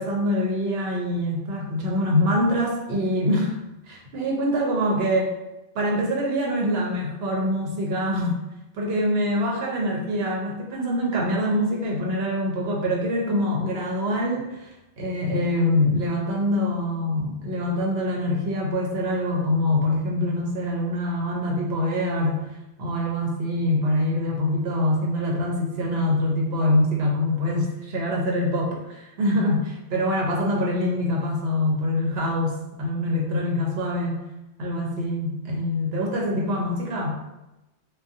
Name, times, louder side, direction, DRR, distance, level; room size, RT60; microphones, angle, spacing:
voice 1, 0.0-3.5 3.9-5.3 5.7-8.4 8.7-14.7 15.0-22.4 22.8-34.2 34.6-37.2, left 1 dB, 65° right, -1 dB, 0.8 m, -24 dB
2.6 x 2.3 x 2.4 m, 0.95 s
omnidirectional pair, 1.2 m